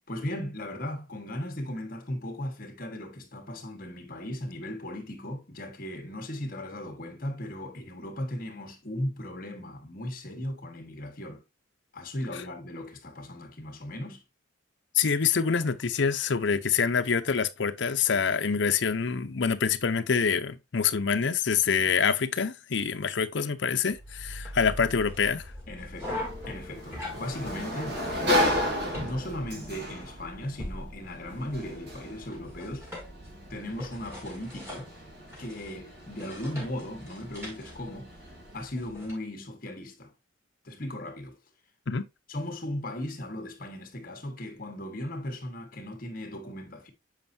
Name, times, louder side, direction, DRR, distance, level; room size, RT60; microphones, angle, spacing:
voice 1, 0.1-11.4 11.9-14.2 25.7-32.9 33.5-34.9 35.4-38.1 38.5-40.1 40.6-41.4 42.3-46.9, left 1 dB, 45° left, 1.5 m, -37 dB
voice 2, 14.9-25.4 41.9-42.1, left 6 dB, 70° left, 0.6 m, -26 dB
sound 1, 23.9-39.1, left 1 dB, 15° right, 2.9 m, -42 dB
Sliding door, 26.0-38.6, left 1 dB, 60° right, 2.5 m, -34 dB
7.4 x 5.3 x 2.7 m
head